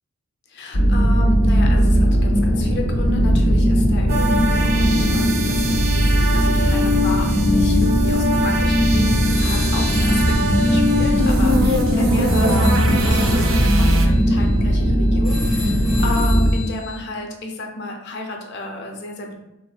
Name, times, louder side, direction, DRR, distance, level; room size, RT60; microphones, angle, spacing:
voice 1, 0.5-19.4, left 2 dB, 55° left, 2 dB, 0.5 m, -31 dB
sound 1, 0.7-16.5, equal, 85° left, 0.7 m, -18 dB
sound 2, 4.1-14.1, left 1 dB, 65° right, 0.5 m, -23 dB
sound 3, 9.2-17.0, left 3 dB, ahead, 0.5 m, -36 dB
3.5 x 2.5 x 2.2 m, 0.89 s
head